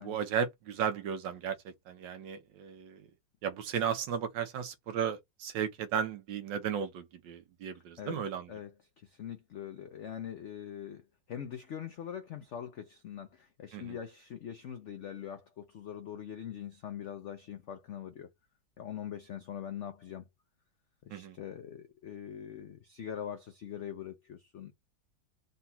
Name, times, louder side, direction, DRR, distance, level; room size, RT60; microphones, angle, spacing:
voice 1, 0.0-3.1 3.4-8.5 13.7-14.0 21.1-21.4, right 8 dB, 90° right, 1.5 m, -35 dB
voice 2, 8.5-18.3 18.8-20.2 21.0-24.7, left 9 dB, 70° left, 0.7 m, -43 dB
3.9 x 2.3 x 4.0 m
omnidirectional pair, 2.0 m